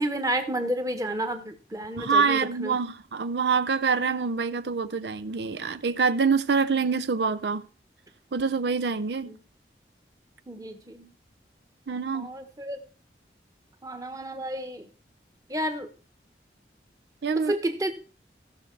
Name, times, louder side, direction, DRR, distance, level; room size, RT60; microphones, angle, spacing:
voice 1, 0.0-2.8 9.2-9.4 10.5-11.1 12.1-12.8 13.8-14.9 15.5-15.9 17.4-17.9, right 1 dB, 20° right, 1.2 m, -31 dB
voice 2, 2.0-7.6 8.3-9.3 11.9-12.3 17.2-17.5, right 5 dB, 75° right, 0.6 m, -25 dB
15.5 x 6.6 x 4.7 m
head